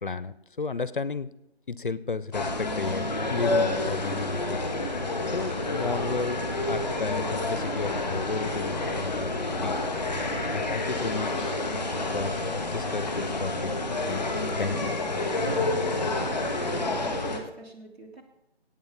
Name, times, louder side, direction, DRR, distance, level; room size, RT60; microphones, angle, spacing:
voice 1, 0.0-1.3 1.7-5.0 5.3-9.8 10.5-11.6 11.8-13.8 14.1-14.3 14.6-15.0, left 4 dB, 50° left, 17 dB, 0.5 m, -33 dB
sound 1, 2.3-17.4, left 2 dB, ahead, 0.7 m, -29 dB
voice 2, 15.6-18.2, right 2 dB, 75° right, 2 dB, 3.0 m, -44 dB
16.5 x 8.7 x 3.6 m, 0.87 s
figure-of-eight pair, 160°, 32 cm